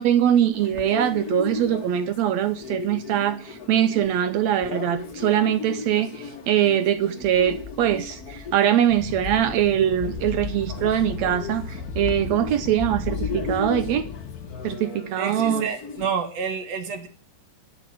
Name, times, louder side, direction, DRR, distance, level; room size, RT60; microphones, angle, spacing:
voice 1, 0.0-14.1 14.6-15.7, right 10 dB, 75° right, 11 dB, 1.7 m, -22 dB
sound 1, 0.5-16.1, left 4 dB, 45° left, 1.3 m, -36 dB
sound 2, 7.2-8.6 8.9-14.2 14.6-14.7, left 6 dB, 5° left, 1.7 m, -37 dB
sound 3, 8.9-14.8, left 7 dB, 75° left, 2.2 m, -38 dB
voice 2, 15.2-17.1, right 6 dB, 60° right, 6 dB, 2.4 m, -29 dB
12.0 x 6.0 x 9.2 m, 0.41 s
omnidirectional pair, 3.7 m